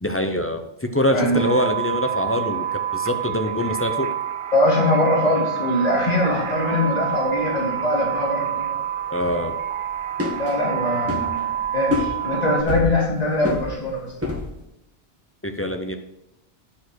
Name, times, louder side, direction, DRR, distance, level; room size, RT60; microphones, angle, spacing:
voice 1, 0.0-4.1 9.1-9.5 15.4-16.0, left 1 dB, 20° left, 5 dB, 0.4 m, -24 dB
sound 1, 1.3-12.6, right 10 dB, 55° right, 0.6 m, -28 dB
voice 2, 4.5-8.7 10.3-11.5 11.7-14.1, left 1 dB, 35° left, -4 dB, 2.6 m, -22 dB
sound 2, 6.2-8.3 8.6-8.7 8.9-14.6, left 2 dB, 10° right, 1.4 m, -29 dB
9.8 x 4.6 x 6.3 m, 0.84 s
omnidirectional pair, 1.2 m